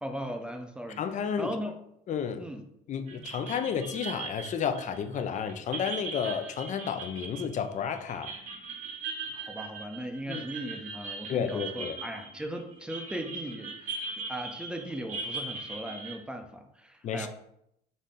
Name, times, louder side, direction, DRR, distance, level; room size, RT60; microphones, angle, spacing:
voice 1, 0.0-1.0 1.4-1.7 2.4-2.6 9.3-17.3, equal, 5° right, 5 dB, 0.6 m, -38 dB
voice 2, 1.0-1.6 2.1-2.5 2.9-8.3 10.3-10.4 11.3-12.0 17.0-17.3, left 7 dB, 45° left, 9 dB, 0.5 m, -31 dB
sound 1, 3.1-16.2, right 4 dB, 50° right, 1.1 m, -40 dB
4.1 x 3.1 x 3.7 m, 0.77 s
cardioid pair, 110°, 17 cm